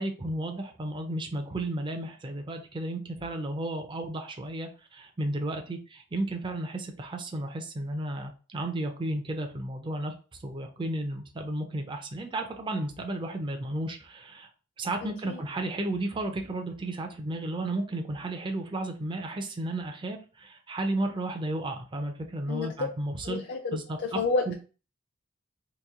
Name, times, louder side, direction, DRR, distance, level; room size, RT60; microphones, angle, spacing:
voice 1, 0.0-10.1 10.4-14.5 14.8-23.4 23.7-24.2 24.5-24.6, right 1 dB, 20° right, 4 dB, 0.4 m, -33 dB
voice 2, 23.2-24.5, left 4 dB, 55° left, 3 dB, 0.4 m, -30 dB
2.9 x 2.6 x 3.6 m, 0.36 s
head